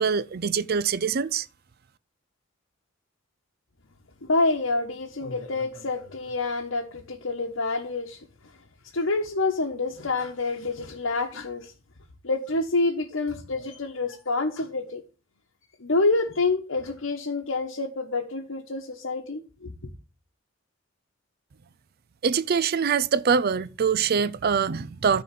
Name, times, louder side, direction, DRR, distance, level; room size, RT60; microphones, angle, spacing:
voice 1, 0.0-1.5 22.2-25.2, right 6 dB, 50° right, 0.4 m, -24 dB
voice 2, 4.2-8.2 8.9-11.7 12.2-15.0 15.8-19.7, left 3 dB, 70° left, 1.1 m, -27 dB
10.5 x 3.9 x 7.4 m
head